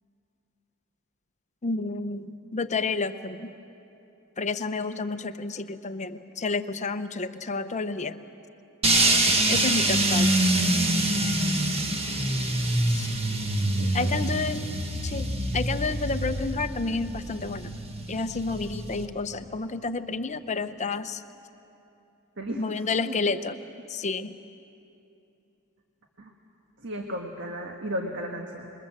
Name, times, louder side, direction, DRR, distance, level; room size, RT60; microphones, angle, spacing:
voice 1, 1.6-3.5 4.4-8.2 9.5-10.3 12.9-13.1 13.9-14.7 15.0-17.7 18.1-21.2 22.6-23.6 23.9-24.3, left 3 dB, 30° left, 9 dB, 0.8 m, -30 dB
sound 1, 8.8-19.1, right 1 dB, 25° right, 1.6 m, -25 dB
voice 2, 9.5-9.8 13.7-14.1 14.6-14.9 22.4-23.1 23.5-23.6 26.2-26.3 26.8-28.7, equal, 55° right, 2 dB, 1.6 m, -36 dB
27.5 x 22.5 x 7.5 m, 2.8 s
head